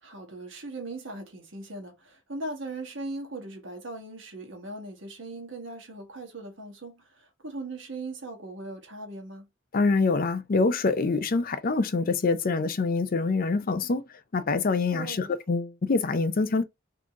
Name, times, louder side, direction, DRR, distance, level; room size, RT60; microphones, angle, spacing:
voice 1, 0.0-9.4 14.9-15.3, right 2 dB, 70° right, 1.5 m, -39 dB
voice 2, 9.7-14.0 14.3-16.6, left 3 dB, 45° left, 0.5 m, -25 dB
3.8 x 2.8 x 3.6 m
head